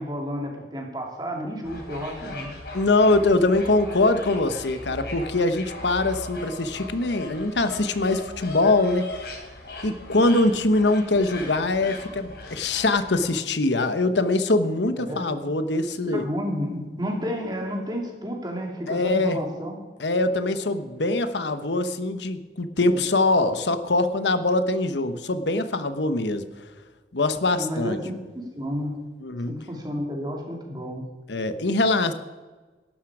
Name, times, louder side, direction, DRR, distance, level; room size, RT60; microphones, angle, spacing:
voice 1, 0.0-2.5 14.9-15.3 16.1-19.8 22.8-23.0 27.6-29.0 29.5-31.0, equal, 25° right, 1 dB, 2.7 m, -31 dB
sound 1, 1.6-13.2, left 2 dB, 65° left, 3.2 m, -39 dB
voice 2, 2.7-9.4 9.8-16.2 18.9-19.4 20.0-26.4 27.1-28.0 29.2-29.6 31.3-32.1, left 2 dB, 85° left, 10 dB, 1.1 m, -23 dB
16.5 x 12.0 x 4.9 m, 1.3 s
head